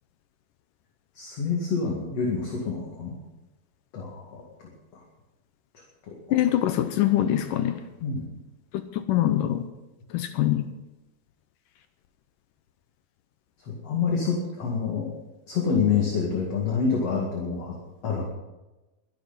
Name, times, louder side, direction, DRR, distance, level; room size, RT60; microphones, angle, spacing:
voice 1, 1.1-3.2 3.9-5.0 6.1-6.4 8.0-8.3 13.7-15.1 15.5-17.8 18.0-18.2, left 5 dB, 45° left, -1 dB, 2.9 m, -27 dB
voice 2, 6.3-7.7 9.1-9.6 10.1-10.6, left 12 dB, 75° left, 9 dB, 2.2 m, -23 dB
23.0 x 10.5 x 4.1 m, 1.1 s
omnidirectional pair, 4.3 m